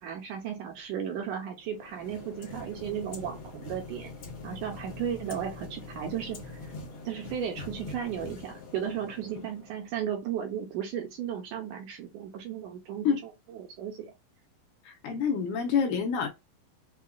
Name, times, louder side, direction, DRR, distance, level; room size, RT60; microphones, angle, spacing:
voice 1, 0.0-4.1 4.4-6.7 7.1-14.1, right 9 dB, 75° right, 2.0 m, -35 dB
sound 1, 1.7-9.9, left 3 dB, 60° left, 1.4 m, -43 dB
voice 2, 14.9-16.3, left 6 dB, 80° left, 2.0 m, -27 dB
5.7 x 2.3 x 2.2 m
omnidirectional pair, 4.1 m